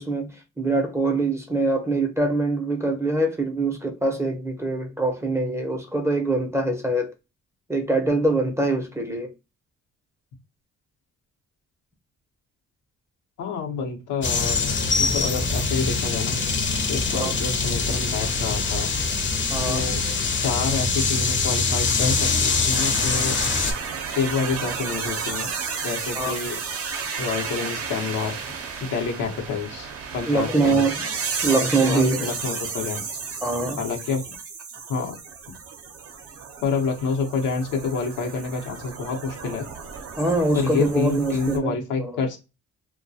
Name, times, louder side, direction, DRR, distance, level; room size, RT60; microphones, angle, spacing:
voice 1, 0.0-7.1 7.7-9.3 17.1-17.3 19.5-19.9 26.2-26.4 30.3-31.0 31.4-32.3 33.4-33.8 40.2-42.2, right 2 dB, 10° right, 0.6 m, -24 dB
voice 2, 13.4-14.6 15.0-16.4 16.9-18.9 19.7-20.0 20.4-23.4 24.1-25.5 25.8-26.6 27.2-28.4 28.8-30.8 31.5-33.1 33.8-34.3 34.9-35.2 36.6-39.7 40.5-42.4, left 5 dB, 85° left, 0.8 m, -28 dB
sound 1, 14.2-23.7, left 4 dB, 40° left, 0.6 m, -23 dB
sound 2, 22.7-41.6, right 5 dB, 50° right, 0.6 m, -33 dB
2.2 x 2.2 x 2.6 m
cardioid pair, 90°, 30 cm